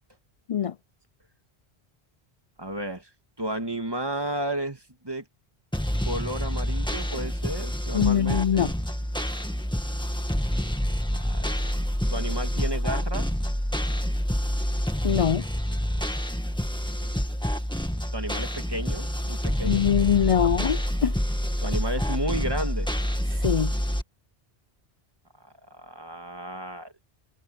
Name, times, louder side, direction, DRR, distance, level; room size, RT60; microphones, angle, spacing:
voice 1, 2.6-3.1 3.4-5.2 6.0-8.6 11.1-11.7 12.1-13.3 17.0-17.2 18.1-20.5 21.6-22.9 25.4-26.9, right 1 dB, 20° right, 2.2 m, -33 dB
sound 1, 5.7-24.0, equal, 5° left, 1.7 m, -27 dB
voice 2, 7.9-8.7 15.0-15.4 19.6-21.1 23.4-23.7, left 9 dB, 50° left, 0.4 m, -23 dB
omnidirectional pair, 1.1 m